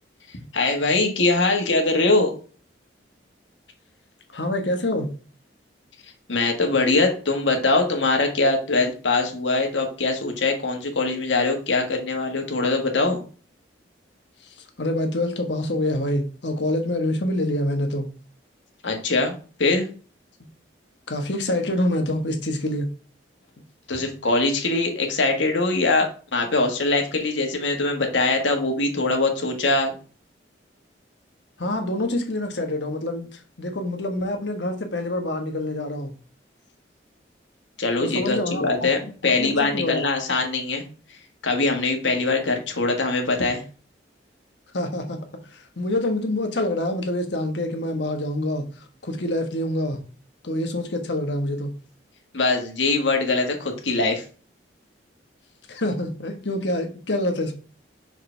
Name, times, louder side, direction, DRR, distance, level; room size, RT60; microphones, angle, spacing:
voice 1, 0.3-2.3 6.3-13.2 18.8-19.3 19.6-19.9 23.9-29.9 37.8-40.8 41.1-41.2 41.4-43.6 52.3-54.2, left 3 dB, 90° left, 3 dB, 1.6 m, -22 dB
voice 2, 4.3-5.1 14.6-18.1 21.1-22.9 31.6-36.1 38.0-38.6 39.4-40.0 44.7-45.2 45.5-48.7 49.0-50.0 50.4-51.7 55.7-57.5, left 1 dB, 70° left, 5 dB, 1.3 m, -26 dB
6.1 x 4.9 x 3.4 m, 0.38 s
head